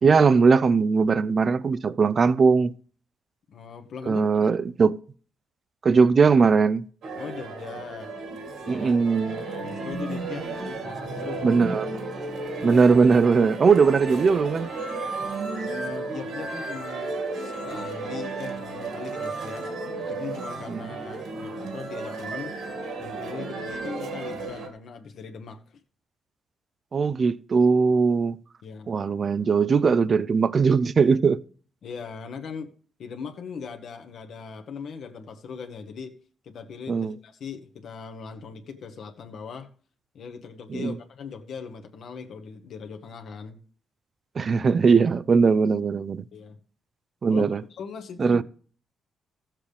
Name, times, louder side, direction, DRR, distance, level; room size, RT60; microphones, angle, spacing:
voice 1, 0.0-2.7 4.1-5.0 5.8-6.9 8.7-9.4 11.4-11.9 12.6-14.7 20.7-20.9 26.9-28.4 28.9-31.4 36.9-37.1 40.7-40.9 44.4-46.2 47.2-47.6 48.2-48.4, right 5 dB, 35° right, 0.4 m, -20 dB
voice 2, 3.5-4.3 7.2-8.1 8.6-9.0 9.4-10.5 10.8-11.4 15.6-19.7 20.0-22.6 23.0-25.6 28.6-28.9 31.8-32.7 33.0-36.1 36.4-39.7 40.1-43.6 46.3-46.6 47.3-47.4 47.7-48.4, left 6 dB, 55° left, 1.2 m, -39 dB
sound 1, 7.0-24.7, right 3 dB, 65° right, 2.1 m, -33 dB
15.0 x 7.3 x 3.4 m
cardioid pair, 150°, 0 cm